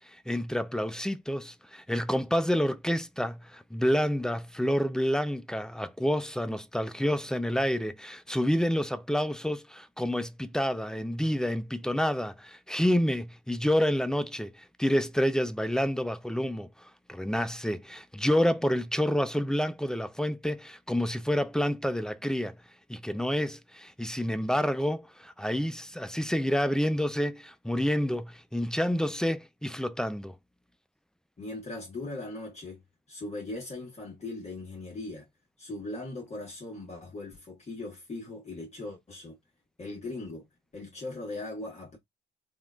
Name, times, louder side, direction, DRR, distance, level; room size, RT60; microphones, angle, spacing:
voice 1, 0.3-16.7 17.1-22.6 22.9-30.3, equal, 5° left, 0.3 m, -28 dB
voice 2, 31.4-32.8 33.1-35.3 35.6-39.4 39.8-40.5 40.7-42.0, left 2 dB, 35° left, 1.3 m, -39 dB
3.6 x 2.4 x 2.3 m
cardioid pair, 90°, 20 cm